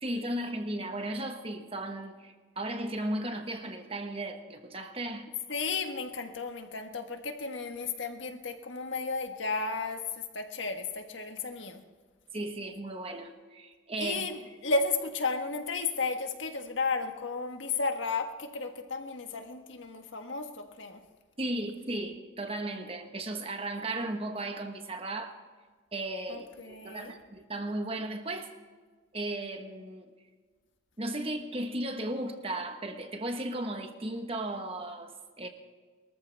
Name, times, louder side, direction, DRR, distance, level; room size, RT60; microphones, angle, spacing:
voice 1, 0.0-5.3 12.3-14.3 21.4-25.4 25.9-28.5 29.1-30.1 31.0-35.5, right 1 dB, 30° right, 6 dB, 1.3 m, -35 dB
voice 2, 5.5-10.0 10.3-11.8 14.0-21.0 26.3-27.1, left 3 dB, 80° left, 5 dB, 1.5 m, -33 dB
23.0 x 14.0 x 3.5 m, 1.4 s
head